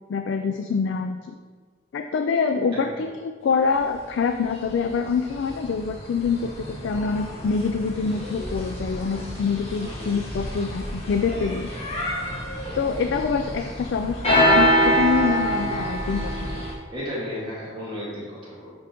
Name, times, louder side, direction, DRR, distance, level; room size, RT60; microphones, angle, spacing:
voice 1, 0.1-1.3 1.9-11.7 12.7-16.7, left 5 dB, 70° left, 6 dB, 0.3 m, -25 dB
sound 1, 4.5-4.6 5.2-16.7, equal, 30° left, 1.2 m, -26 dB
voice 2, 9.8-10.2 15.5-15.7 16.9-18.7, left 1 dB, 25° right, -8 dB, 1.8 m, -34 dB
10.0 x 3.6 x 3.0 m, 1.5 s
head